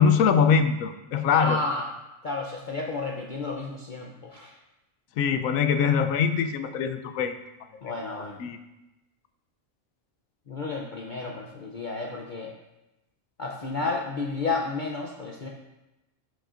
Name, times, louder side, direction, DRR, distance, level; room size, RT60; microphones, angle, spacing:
voice 1, 0.0-1.6 5.2-7.3 8.4-8.6, left 6 dB, 85° left, 9 dB, 1.0 m, -22 dB
voice 2, 1.3-1.9 2.2-4.5 7.8-8.4 10.5-12.5 13.4-15.5, left 3 dB, 45° left, -1 dB, 0.7 m, -32 dB
11.5 x 5.5 x 2.5 m, 0.97 s
omnidirectional pair, 1.4 m